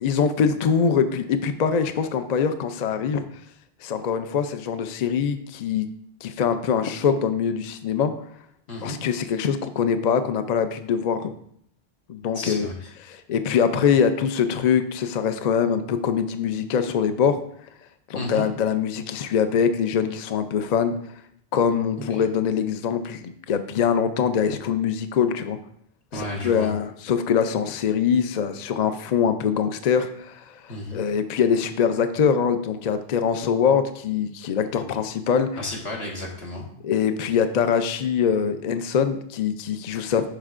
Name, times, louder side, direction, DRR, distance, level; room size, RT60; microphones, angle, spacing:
voice 1, 0.0-3.3 3.8-5.9 6.2-8.1 8.8-11.3 12.1-12.7 13.0-17.4 18.1-20.9 21.5-25.6 26.1-35.6 36.8-40.3, left 7 dB, 55° left, 9 dB, 0.5 m, -23 dB
voice 2, 12.3-12.7 18.1-18.5 26.1-26.7 30.7-31.0 34.8-34.9 35.6-36.6, left 1 dB, 75° left, -1 dB, 1.6 m, -32 dB
11.5 x 4.4 x 2.4 m, 0.68 s
omnidirectional pair, 1.1 m